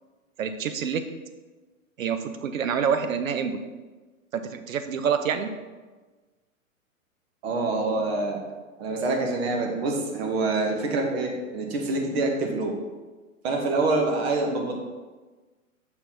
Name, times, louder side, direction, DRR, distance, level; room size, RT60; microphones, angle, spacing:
voice 1, 0.4-1.0 2.0-3.6 4.3-5.5, right 7 dB, 70° right, 9 dB, 0.7 m, -27 dB
voice 2, 7.4-8.4 8.8-12.7 13.4-14.8, right 2 dB, 45° right, 2 dB, 1.2 m, -26 dB
5.9 x 4.0 x 3.9 m, 1.3 s
figure-of-eight pair, 110°, 41 cm